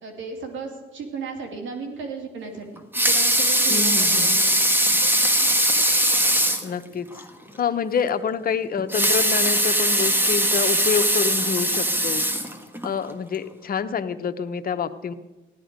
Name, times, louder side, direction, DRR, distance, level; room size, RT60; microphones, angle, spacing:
voice 1, 0.0-2.7 2.9-4.5, right 4 dB, 75° right, 3 dB, 2.8 m, -35 dB
Water tap faucet / Sink (filling or washing) / Liquid, 2.7-6.7 7.2-7.3 7.6-7.7 8.8-12.9 13.5-13.6, right 1 dB, 10° right, 1.3 m, -20 dB
voice 2, 3.7-4.3 6.6-7.1 7.6-12.2 12.8-15.1, left 6 dB, 45° left, 9 dB, 0.9 m, -27 dB
16.0 x 11.0 x 5.2 m, 1.1 s
cardioid pair, 90°, 20 cm